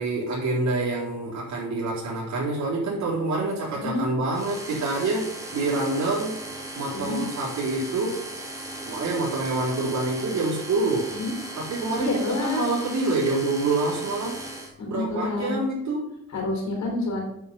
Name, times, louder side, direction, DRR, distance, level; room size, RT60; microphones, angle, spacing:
voice 1, 0.0-5.2 5.5-6.3 6.7-8.2 8.8-11.1 11.6-14.4 14.9-16.1, right 2 dB, 60° right, -7 dB, 4.0 m, -26 dB
sound 1, 4.3-14.7, right 1 dB, 10° right, 3.0 m, -38 dB
voice 2, 6.9-7.3 11.1-11.3 12.0-12.7 14.8-15.5 16.3-17.3, left 2 dB, 65° left, 0 dB, 3.6 m, -28 dB
8.4 x 7.7 x 5.7 m, 0.84 s
cardioid pair, 90°, 30 cm